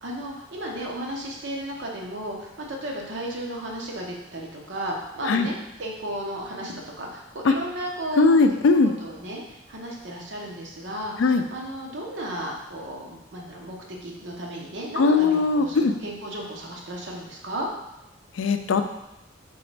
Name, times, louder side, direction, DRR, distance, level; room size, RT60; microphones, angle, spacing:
voice 1, 0.0-5.5 5.8-8.4 8.7-17.7, right 1 dB, 70° right, -1 dB, 0.9 m, -34 dB
voice 2, 8.2-8.9 11.2-11.4 15.0-15.9 18.4-18.8, left 3 dB, 85° left, 7 dB, 0.4 m, -19 dB
3.9 x 3.9 x 3.3 m, 0.90 s
head